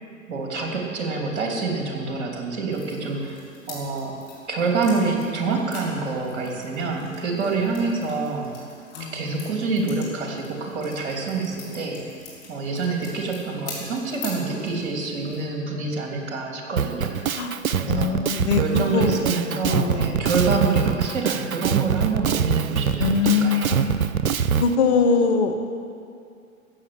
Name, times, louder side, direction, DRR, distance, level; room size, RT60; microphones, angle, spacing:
voice 1, 0.3-3.4 3.7-4.1 4.5-8.5 9.0-12.0 12.5-17.1 17.8-23.8, right 4 dB, 55° right, 1 dB, 3.0 m, -27 dB
sound 1, 2.7-15.5, left 4 dB, 35° left, 4.3 m, -44 dB
Drum kit, 16.8-24.7, right 7 dB, 90° right, 0.6 m, -24 dB
voice 2, 17.9-19.2 19.7-20.3 23.0-24.1 24.5-25.5, left 5 dB, 55° left, 6 dB, 1.3 m, -22 dB
13.5 x 8.3 x 7.7 m, 2.3 s
figure-of-eight pair, 105°, 40 cm